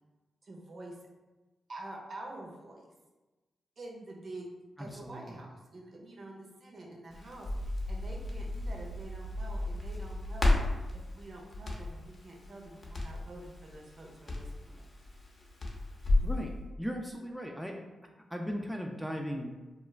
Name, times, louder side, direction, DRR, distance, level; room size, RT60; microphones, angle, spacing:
voice 1, 0.4-0.9 1.7-2.8 3.8-4.5 4.8-14.8, right 2 dB, 60° right, -1 dB, 0.6 m, -47 dB
voice 2, 4.8-5.4 16.2-16.5 16.8-17.8 18.3-19.6, equal, 5° right, 1 dB, 0.3 m, -37 dB
Crackle, 7.1-16.3, left 2 dB, 50° left, 0.6 m, -33 dB
2.3 x 2.1 x 3.1 m, 1.2 s
supercardioid pair, 50°, 0 cm